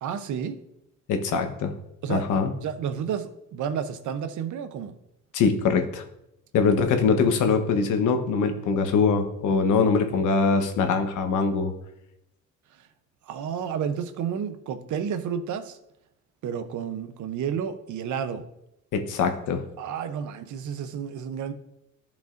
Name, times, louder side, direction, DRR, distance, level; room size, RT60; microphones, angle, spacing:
voice 1, 0.0-0.6 2.0-2.3 2.6-5.0 13.3-15.8 16.4-18.4 19.8-21.5, right 7 dB, 75° right, 10 dB, 0.8 m, -31 dB
voice 2, 1.1-1.8 2.1-2.5 5.3-6.0 6.5-11.7 18.9-19.6, left 5 dB, 85° left, 6 dB, 1.1 m, -23 dB
11.5 x 5.3 x 2.6 m, 0.82 s
cardioid pair, 90°, 30 cm